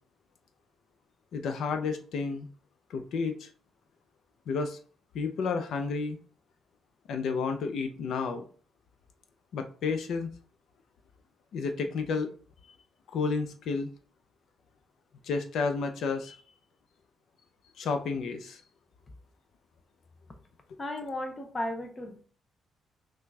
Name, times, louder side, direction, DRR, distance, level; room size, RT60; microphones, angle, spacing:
voice 1, 1.3-2.5 2.9-3.5 4.5-4.8 5.1-6.2 7.1-8.5 9.5-10.3 11.5-12.3 13.1-13.9 15.2-16.4 17.8-18.6, left 4 dB, 65° left, 7 dB, 0.6 m, -31 dB
voice 2, 20.8-22.2, left 1 dB, 20° left, 4 dB, 0.5 m, -35 dB
5.8 x 2.3 x 3.3 m, 0.41 s
cardioid pair, 165°, 0 cm